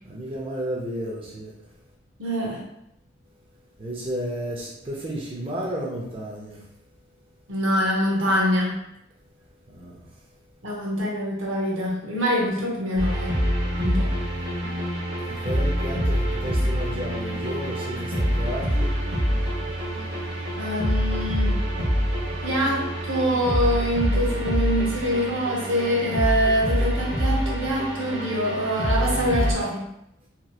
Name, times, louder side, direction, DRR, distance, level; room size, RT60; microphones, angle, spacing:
voice 1, 0.0-1.5 3.8-6.7 9.7-10.1 15.3-18.9, right 1 dB, 25° right, -4 dB, 0.5 m, -32 dB
voice 2, 2.2-2.6 7.5-8.8 10.6-13.4 13.8-14.1 20.6-21.6 22.4-29.9, equal, 85° right, -2 dB, 0.9 m, -25 dB
sound 1, 13.0-29.5, equal, 55° right, 0.9 m, -26 dB
3.1 x 2.9 x 2.3 m, 0.79 s
head